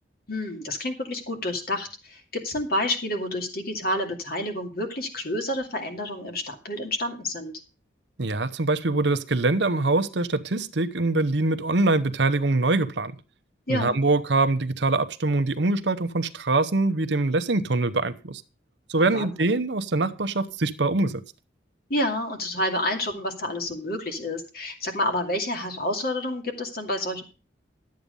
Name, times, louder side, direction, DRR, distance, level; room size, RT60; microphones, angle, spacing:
voice 1, 0.3-7.5 13.7-14.0 19.0-19.5 21.9-27.2, left 1 dB, 50° left, 2.5 m, -29 dB
voice 2, 8.2-13.1 13.7-18.4 18.9-21.2, right 2 dB, 65° right, 0.9 m, -24 dB
12.0 x 8.4 x 5.3 m
head